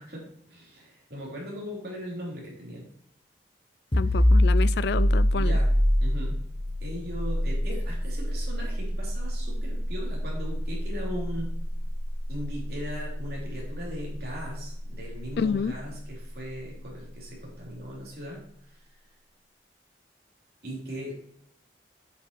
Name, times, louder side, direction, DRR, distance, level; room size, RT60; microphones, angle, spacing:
voice 1, 0.0-2.9 4.0-4.2 5.3-5.7 6.0-6.4 6.8-11.5 12.3-18.4 18.7-18.8 20.6-21.1, equal, 60° right, 3.4 m, -39 dB
voice 2, 3.9-5.6 15.4-15.8, left 6 dB, 65° left, 0.3 m, -28 dB
sound 1, 3.9-15.3, equal, 30° left, 1.0 m, -26 dB
8.4 x 5.8 x 4.6 m
head